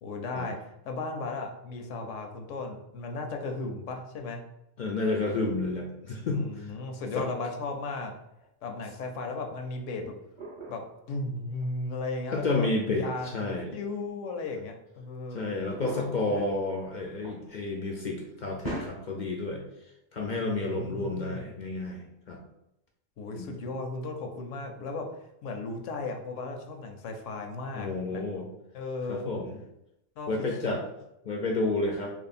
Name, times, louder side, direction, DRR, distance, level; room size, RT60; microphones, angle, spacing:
voice 1, 0.0-4.4 6.3-8.1 8.6-10.1 10.7-10.8 11.1-15.5 16.2-16.5 20.4-21.5 23.2-28.4 28.7-29.3 30.2-30.8, left 3 dB, 75° left, 4 dB, 1.0 m, -36 dB
voice 2, 4.8-6.7 7.2-7.3 12.3-13.7 15.3-19.6 20.1-22.4 23.3-23.5 27.7-28.5 29.1-29.5 30.3-30.8 31.2-32.1, left 2 dB, 55° left, 1 dB, 0.5 m, -30 dB
sound 1, 7.2-7.3 8.4-8.5 9.7-11.1 11.6-11.7 12.8-13.2 14.3-14.4 15.7-17.6 17.9-18.2 18.5-18.9, right 1 dB, 25° right, 0.8 m, -42 dB
3.0 x 2.7 x 4.1 m, 0.83 s
omnidirectional pair, 1.3 m